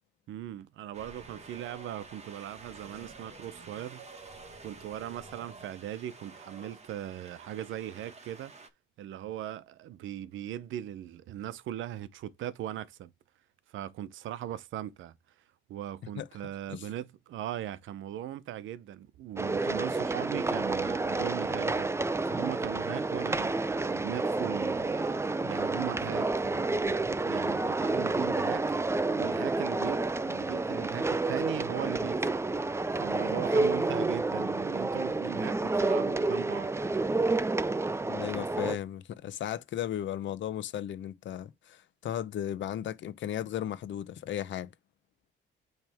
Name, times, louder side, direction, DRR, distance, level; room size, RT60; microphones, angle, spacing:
voice 1, 0.3-4.1 4.6-8.5 9.0-13.1 13.7-15.1 15.7-21.9 22.2-32.4 33.0-36.7, right 12 dB, 75° right, 0.7 m, -39 dB
Wind, 0.9-8.7, right 3 dB, 35° right, 1.7 m, -49 dB
sound 1, 19.4-38.8, right 3 dB, 15° right, 0.5 m, -29 dB
voice 2, 38.0-44.7, left 11 dB, 70° left, 0.9 m, -35 dB
8.9 x 3.3 x 3.5 m
cardioid pair, 90°, 20 cm